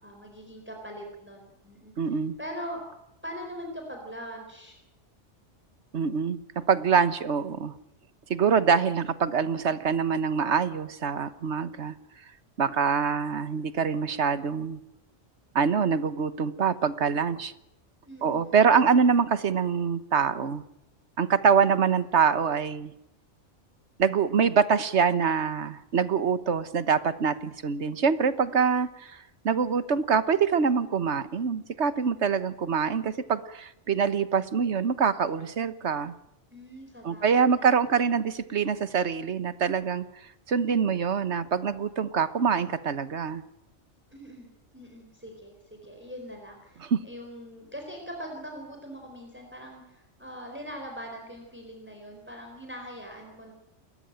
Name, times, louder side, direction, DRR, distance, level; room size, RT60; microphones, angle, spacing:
voice 1, 0.0-2.8 3.2-4.7 18.0-18.6 36.5-38.2 44.1-44.5 44.7-53.5, equal, 10° right, 2 dB, 4.3 m, -42 dB
voice 2, 2.0-2.3 5.9-7.7 8.3-11.9 12.6-14.8 15.5-17.5 18.2-20.6 21.2-22.9 24.0-36.1 37.0-40.0 40.5-43.4 46.9-47.0, right 6 dB, 70° right, 13 dB, 1.5 m, -25 dB
29.0 x 14.0 x 9.0 m, 0.87 s
omnidirectional pair, 1.2 m